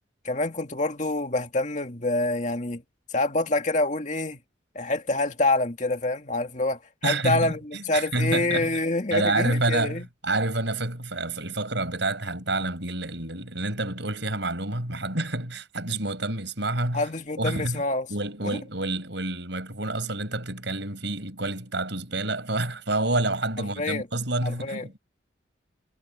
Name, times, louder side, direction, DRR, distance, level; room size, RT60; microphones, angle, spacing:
voice 1, 0.2-2.8 3.1-4.4 4.7-10.0 16.9-18.1 18.4-18.6 23.8-24.1 24.4-24.9, left 2 dB, 40° left, 2.2 m, -26 dB
voice 2, 7.0-8.8 9.1-17.1 17.4-17.8 18.1-25.0, right 2 dB, 70° right, 5.9 m, -28 dB
head